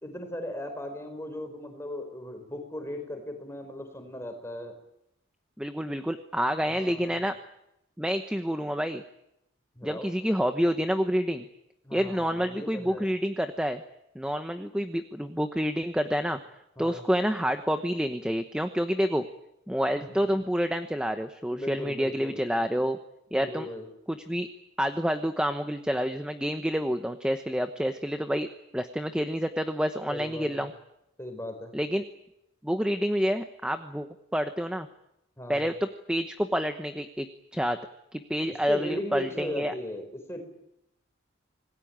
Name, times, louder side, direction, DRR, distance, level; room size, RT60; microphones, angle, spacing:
voice 1, 0.0-4.7 6.7-7.3 9.8-10.1 11.8-13.1 16.8-17.0 20.0-20.4 21.5-22.4 23.3-23.8 30.1-30.7 31.2-31.7 35.4-35.6 38.4-40.4, left 1 dB, 10° left, 5 dB, 4.7 m, -37 dB
voice 2, 5.6-7.4 8.0-9.0 9.8-11.5 11.9-13.8 14.1-16.4 16.8-19.3 19.7-23.0 23.3-23.7 24.1-24.5 24.8-28.5 28.7-30.7 31.7-32.0 32.6-34.9 35.5-37.3 37.5-37.8 38.1-39.7, equal, 5° right, 7 dB, 1.0 m, -28 dB
26.5 x 20.0 x 8.9 m, 0.83 s
head